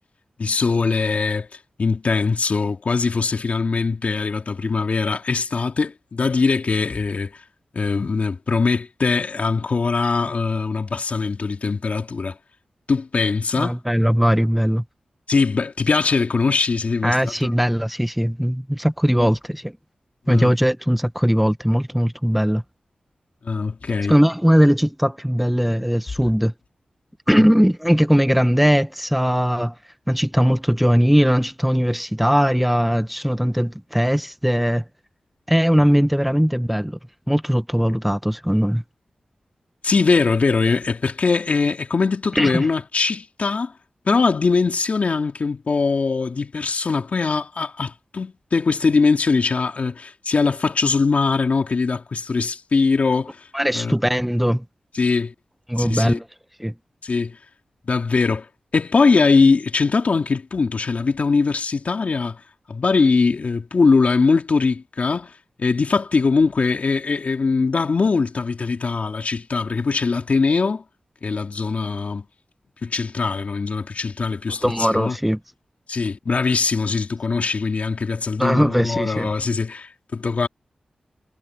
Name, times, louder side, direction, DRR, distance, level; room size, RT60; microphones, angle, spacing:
voice 1, 0.4-1.5 1.8-7.3 7.7-12.4 12.9-13.8 15.3-17.5 19.2-19.3 20.3-20.5 23.4-24.1 27.4-27.5 35.8-35.9 39.8-43.7 44.0-53.4 53.7-54.0 54.9-55.3 55.8-56.2 57.0-57.4 57.9-58.5 58.7-62.4 62.7-65.3 65.6-70.8 71.2-72.2 72.8-75.2 75.9-80.5, left 4 dB, 65° left, 2.9 m, -21 dB
voice 2, 13.6-14.8 17.0-19.7 20.3-22.6 24.1-26.5 27.3-29.7 30.1-34.8 35.5-37.0 37.3-38.8 42.4-42.7 53.5-54.6 55.7-56.2 56.6-56.7 74.6-75.4 78.4-79.3, equal, 5° right, 1.1 m, -19 dB
cardioid pair, 50°, 3 cm